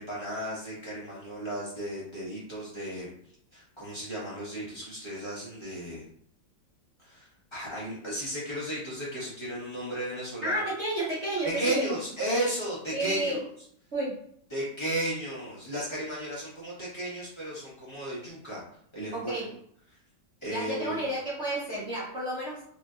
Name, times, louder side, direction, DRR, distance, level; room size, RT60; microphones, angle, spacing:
voice 1, 0.0-3.1 3.5-6.1 7.0-10.6 11.4-13.4 14.5-18.6 18.9-19.4 20.4-21.0, right 1 dB, 25° left, -8 dB, 0.6 m, -34 dB
voice 2, 10.4-11.9 12.9-13.4 13.9-14.2 19.1-19.6 20.5-22.6, right 1 dB, 60° right, -7 dB, 0.7 m, -31 dB
3.0 x 2.7 x 2.4 m, 0.65 s
omnidirectional pair, 2.1 m